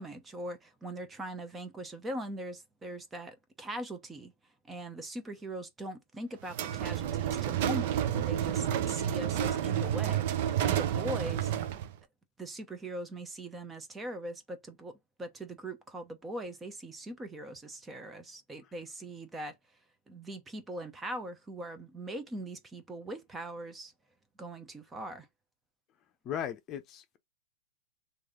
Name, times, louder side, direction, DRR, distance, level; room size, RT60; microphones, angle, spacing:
voice 1, 0.0-4.3 4.7-10.3 10.6-11.5 12.4-19.5 20.1-23.9 24.4-25.3, right 1 dB, 15° right, 0.8 m, -41 dB
sound 1, 6.5-11.9, right 10 dB, 55° right, 0.6 m, -30 dB
voice 2, 26.2-27.2, left 9 dB, 35° left, 0.7 m, -37 dB
3.2 x 2.7 x 3.7 m
hypercardioid pair, 125°, 0 cm